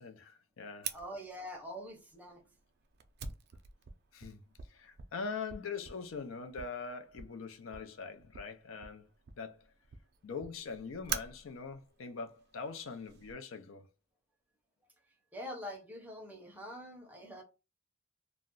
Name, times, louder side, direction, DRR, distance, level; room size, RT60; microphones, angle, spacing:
voice 1, 0.0-1.0 4.1-4.4 4.7-9.1 9.4-9.6 10.2-13.8, left 5 dB, 75° left, 0.4 m, -42 dB
Fire, 0.8-13.3, right 7 dB, 55° right, 0.4 m, -47 dB
voice 2, 0.9-2.4 15.3-17.4, equal, 10° right, 0.6 m, -44 dB
2.3 x 2.0 x 3.7 m
head